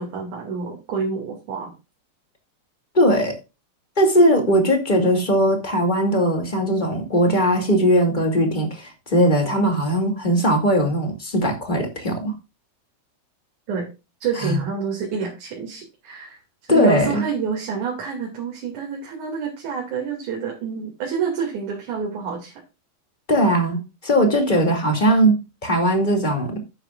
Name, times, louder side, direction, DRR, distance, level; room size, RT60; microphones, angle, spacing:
voice 1, 0.0-1.7 13.7-13.9 14.2-22.6, right 6 dB, 80° right, 3.8 m, -28 dB
voice 2, 2.9-3.4 4.0-12.3 14.4-14.6 16.7-17.2 23.3-26.6, equal, 15° left, 2.2 m, -19 dB
12.0 x 9.0 x 2.5 m
omnidirectional pair, 3.4 m